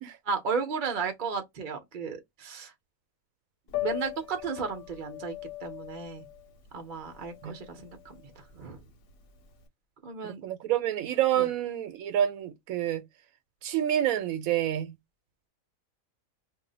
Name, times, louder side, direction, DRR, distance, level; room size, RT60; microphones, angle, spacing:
voice 1, 0.2-2.7 3.8-5.3 5.6-6.3 6.7-8.8 10.0-10.4 11.4-11.5, right 5 dB, 45° right, 0.7 m, -34 dB
Piano, 3.7-9.6, left 15 dB, 85° left, 1.2 m, -39 dB
voice 2, 10.2-13.0 13.6-14.9, right 11 dB, 85° right, 1.0 m, -28 dB
2.7 x 2.0 x 3.8 m
omnidirectional pair, 1.4 m